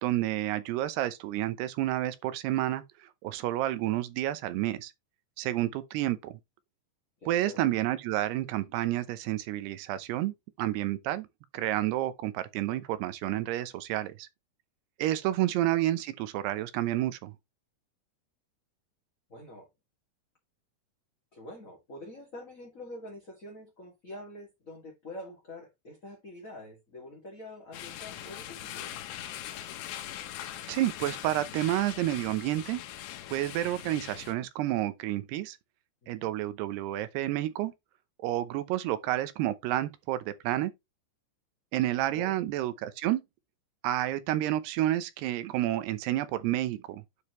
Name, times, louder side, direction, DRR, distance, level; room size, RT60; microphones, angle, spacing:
voice 1, 0.0-4.9 5.4-6.3 7.3-11.3 11.5-14.3 15.0-17.3 30.7-32.8 33.3-35.6 36.1-37.7 38.2-40.7 41.7-43.2 43.8-47.0, right 14 dB, 80° right, 2.9 m, -30 dB
voice 2, 7.2-7.6 15.3-15.4 19.3-19.7 21.3-28.9 36.0-36.3 42.1-42.4, left 1 dB, 25° left, 1.9 m, -46 dB
sound 1, 27.7-34.3, left 12 dB, 85° left, 3.3 m, -41 dB
9.7 x 5.1 x 3.1 m
omnidirectional pair, 4.7 m